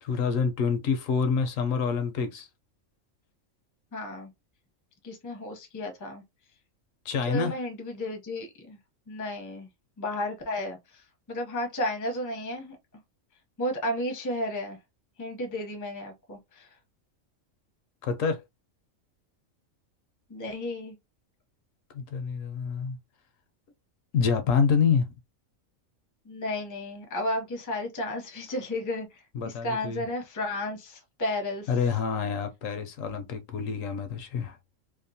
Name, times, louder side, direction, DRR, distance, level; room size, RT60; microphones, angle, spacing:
voice 1, 0.0-2.5 7.1-7.5 18.0-18.4 21.9-23.0 24.1-25.1 29.3-30.1 31.7-34.6, left 6 dB, 75° left, 1.0 m, -27 dB
voice 2, 3.9-4.3 5.0-6.2 7.2-8.8 9.1-9.7 10.0-12.8 13.6-14.8 15.2-16.7 20.3-21.0 26.2-31.7, left 1 dB, 20° left, 0.5 m, -33 dB
2.8 x 2.1 x 2.6 m
omnidirectional pair, 1.4 m